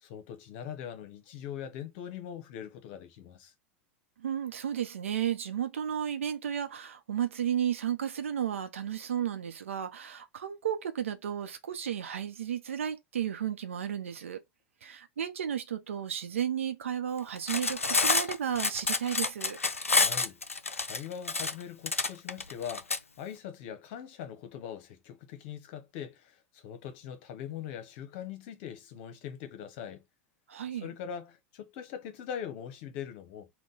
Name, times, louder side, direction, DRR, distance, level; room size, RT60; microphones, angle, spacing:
voice 1, 0.0-3.5 19.9-20.4 20.8-30.0 30.7-33.5, left 9 dB, 50° left, 0.9 m, -42 dB
voice 2, 4.2-14.4 14.8-19.6 30.5-30.9, right 9 dB, 70° right, 0.7 m, -33 dB
Cutlery silverware, 17.4-23.0, left 4 dB, 85° left, 0.4 m, -28 dB
3.8 x 2.3 x 3.8 m
figure-of-eight pair, 85°, 7 cm